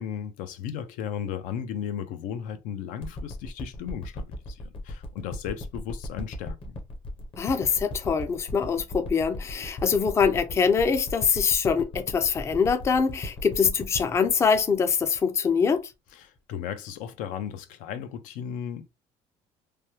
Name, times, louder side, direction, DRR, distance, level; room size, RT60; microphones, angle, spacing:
voice 1, 0.0-6.8 16.1-18.9, left 8 dB, 80° left, 0.6 m, -35 dB
sound 1, 3.0-15.8 16.4-16.5, left 1 dB, 40° left, 0.8 m, -37 dB
voice 2, 7.4-15.9, left 6 dB, 20° left, 0.4 m, -24 dB
3.2 x 2.2 x 2.8 m
cardioid pair, 140°, 13 cm